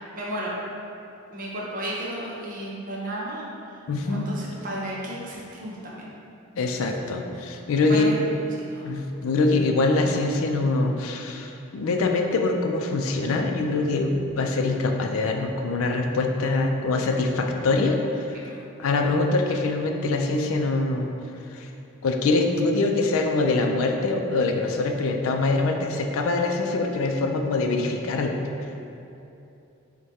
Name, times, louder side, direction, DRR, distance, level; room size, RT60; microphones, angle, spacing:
voice 1, 0.1-0.5 1.3-3.8 4.0-6.0 7.9-8.2 8.7-8.8, right 1 dB, 40° right, -5 dB, 0.7 m, -33 dB
voice 2, 3.9-4.3 6.6-8.2 8.8-21.1 21.5-21.7 22.0-28.4, left 3 dB, 80° left, 3 dB, 0.4 m, -24 dB
4.8 x 2.2 x 4.1 m, 2.8 s
head